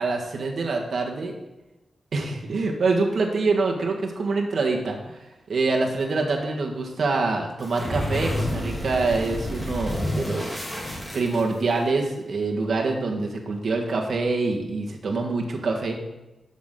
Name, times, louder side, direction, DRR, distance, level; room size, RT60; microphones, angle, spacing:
voice 1, 0.0-1.3 2.1-5.2 5.5-10.6 11.1-15.9, right 3 dB, 65° right, 1 dB, 1.7 m, -25 dB
sound 1, 7.6-11.8, left 1 dB, 15° left, 3.2 m, -29 dB
12.0 x 7.3 x 3.9 m, 1.0 s
wide cardioid pair, 95°, 0 cm